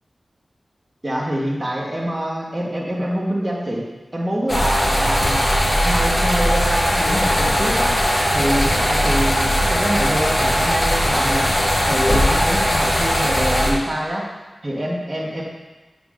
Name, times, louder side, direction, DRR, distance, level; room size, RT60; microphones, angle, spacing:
voice 1, 1.0-3.8 4.1-7.9 8.3-11.5 11.9-14.2 14.6-15.4, equal, 30° right, -5 dB, 1.7 m, -25 dB
sound 1, 4.5-13.7, equal, 45° left, 1.6 m, -19 dB
8.2 x 5.1 x 3.9 m, 1.1 s
cardioid pair, 40°, 0 cm